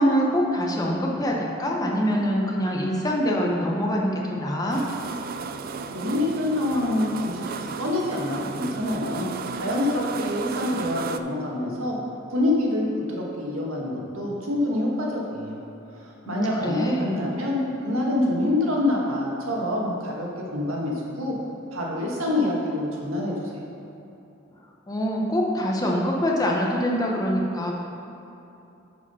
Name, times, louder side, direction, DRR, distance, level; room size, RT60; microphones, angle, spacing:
voice 1, 0.0-4.8 16.2-17.1 24.9-27.8, equal, 20° left, -2 dB, 0.8 m, -24 dB
sound 1, 4.7-11.2, right 5 dB, 45° right, 0.3 m, -34 dB
voice 2, 5.9-12.0 12.3-15.6 15.9-21.3 21.7-23.4, left 1 dB, 90° right, -3 dB, 1.6 m, -26 dB
9.2 x 4.9 x 5.6 m, 2.8 s
head